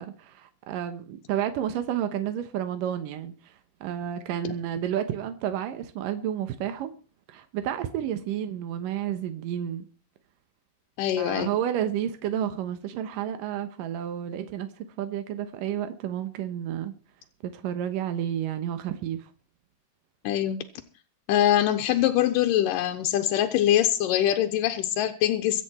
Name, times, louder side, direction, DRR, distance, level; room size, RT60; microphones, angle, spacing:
voice 1, 0.0-3.6 3.8-6.9 7.3-9.8 11.2-16.9 17.4-19.3, right 10 dB, 85° right, 2.8 m, -31 dB
voice 2, 11.0-11.5 20.2-20.6 21.3-25.6, left 12 dB, 90° left, 2.5 m, -23 dB
24.0 x 8.4 x 4.4 m
omnidirectional pair, 3.8 m